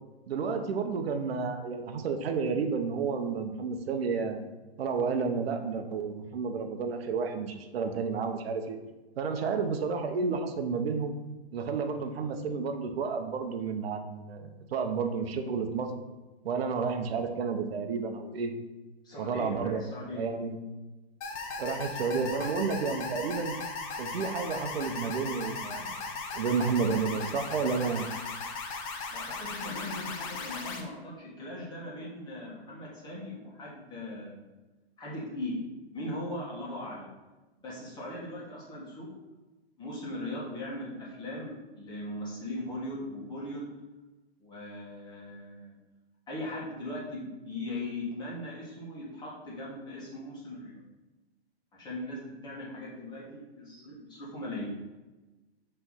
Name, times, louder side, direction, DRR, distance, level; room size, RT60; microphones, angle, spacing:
voice 1, 0.3-4.4 4.8-8.8 9.2-11.1 11.5-15.9 16.4-18.5 19.2-19.8 20.2-20.6 21.6-23.6 24.0-26.0 26.3-28.1, right 5 dB, 65° right, 5 dB, 0.9 m, -31 dB
voice 2, 19.0-20.2 29.1-34.4 35.0-35.6 35.9-37.1 37.6-39.1 39.8-43.7 44.4-45.8 46.3-50.8 51.7-54.7, left 1 dB, 15° left, -6 dB, 1.8 m, -39 dB
sound 1, 21.2-30.8, left 4 dB, 30° left, 0.8 m, -37 dB
5.7 x 3.4 x 5.7 m, 1.1 s
hypercardioid pair, 150°, 33 cm